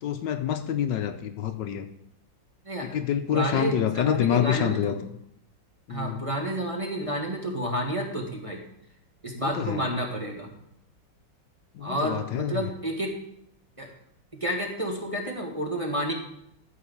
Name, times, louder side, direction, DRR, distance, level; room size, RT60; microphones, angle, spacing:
voice 1, 0.0-1.8 2.9-4.9 5.9-6.2 9.3-9.8 11.8-12.5, left 10 dB, 70° left, 8 dB, 1.3 m, -27 dB
voice 2, 2.6-3.0 3.3-5.0 5.9-8.6 9.2-10.5 11.8-13.1 13.8-13.9 14.4-16.1, right 1 dB, 20° right, 0 dB, 1.7 m, -30 dB
13.0 x 5.0 x 7.1 m, 0.75 s
omnidirectional pair, 2.0 m